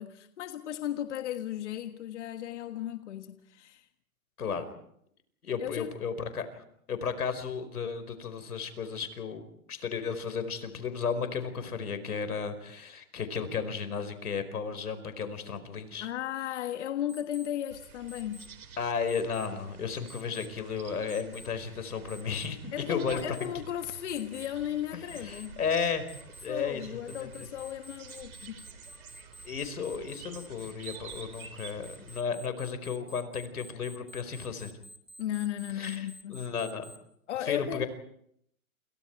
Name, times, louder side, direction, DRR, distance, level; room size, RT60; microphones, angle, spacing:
voice 1, 0.0-3.9 5.6-5.9 16.0-18.5 22.7-25.6 26.5-28.7 35.2-36.5 37.3-37.8, left 11 dB, 55° left, 1.6 m, -35 dB
voice 2, 5.4-16.1 18.8-23.2 25.2-26.1 26.4-26.8 27.1-27.3 29.4-34.7 35.8-36.9 37.4-37.9, left 6 dB, 90° left, 4.9 m, -34 dB
Alarm, 17.1-17.5 18.1-18.5 19.1-19.5 20.1-20.5 21.1-21.5 22.1-22.5 23.1-23.5 24.1-24.5 25.1-25.5 26.1-26.5 27.1-37.0, equal, 10° left, 1.9 m, -50 dB
sound 1, 17.7-32.2, right 6 dB, 75° right, 4.5 m, -50 dB
29.5 x 28.5 x 4.7 m
hypercardioid pair, 155°, 44 cm